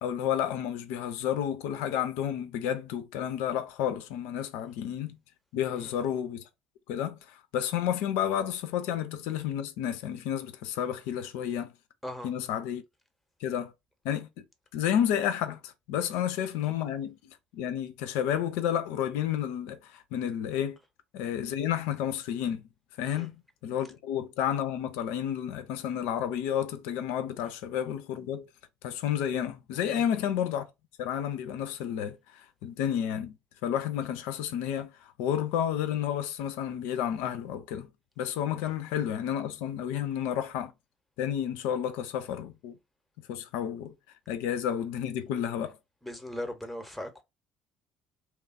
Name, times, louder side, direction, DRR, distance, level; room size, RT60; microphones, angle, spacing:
voice 1, 0.0-5.2 5.5-6.4 6.9-11.7 12.2-12.8 13.4-13.7 14.0-14.4 14.7-20.8 21.1-22.7 23.0-28.5 28.8-30.7 31.0-33.3 33.6-37.9 38.2-40.7 41.2-42.8 43.3-43.9 44.3-45.8, left 10 dB, 65° left, 0.4 m, -31 dB
voice 2, 46.0-47.2, left 1 dB, ahead, 0.8 m, -39 dB
2.8 x 2.2 x 2.4 m
figure-of-eight pair, 55°, 4 cm